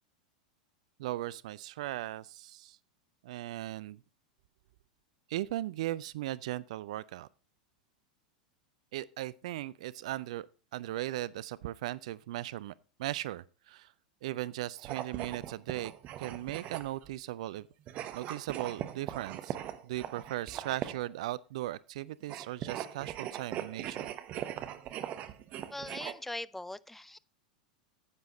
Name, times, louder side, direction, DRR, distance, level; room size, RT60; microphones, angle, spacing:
voice 1, 1.0-2.8 3.2-4.0 5.3-7.3 8.9-10.5 10.7-12.7 13.0-13.9 14.2-15.9 16.2-17.7 18.1-19.6 19.8-24.1, right 15 dB, 60° right, 0.4 m, -38 dB
sound 1, 14.8-17.1 17.9-21.1 22.2-26.1, right 11 dB, 40° right, 1.0 m, -40 dB
voice 2, 25.7-27.2, left 1 dB, 5° left, 0.4 m, -41 dB
9.7 x 8.2 x 4.0 m
figure-of-eight pair, 90°, 4 cm